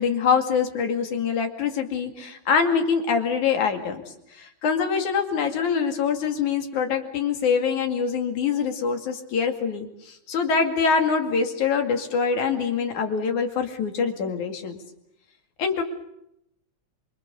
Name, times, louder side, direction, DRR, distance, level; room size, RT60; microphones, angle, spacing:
voice 1, 0.0-4.0 4.4-14.8 15.6-15.8, left 6 dB, 85° left, 5 dB, 3.7 m, -24 dB
27.0 x 23.5 x 7.0 m, 0.79 s
omnidirectional pair, 3.3 m